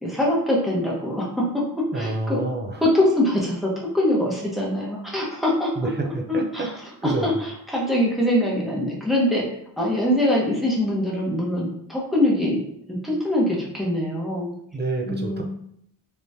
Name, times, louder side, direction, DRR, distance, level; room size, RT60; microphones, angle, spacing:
voice 1, 0.0-1.4 1.9-2.4 2.8-5.7 6.3-6.7 7.0-9.5 9.8-14.5 15.1-15.4, left 1 dB, ahead, -5 dB, 1.0 m, -23 dB
voice 2, 1.9-2.8 5.8-6.7 7.0-7.3 14.7-15.4, right 2 dB, 25° right, 2 dB, 0.5 m, -28 dB
3.6 x 3.0 x 2.7 m, 0.71 s
wide cardioid pair, 110°, 44 cm